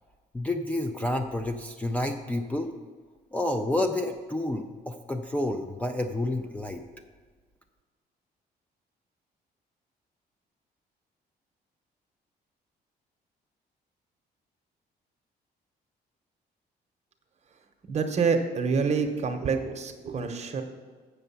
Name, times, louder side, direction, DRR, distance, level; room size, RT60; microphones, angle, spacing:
voice 1, 0.3-2.7 3.3-6.8, left 1 dB, 10° left, 5 dB, 0.4 m, -29 dB
voice 2, 17.9-20.6, right 5 dB, 40° right, 6 dB, 0.9 m, -27 dB
7.8 x 6.6 x 5.6 m, 1.5 s
cardioid pair, 130°, 17 cm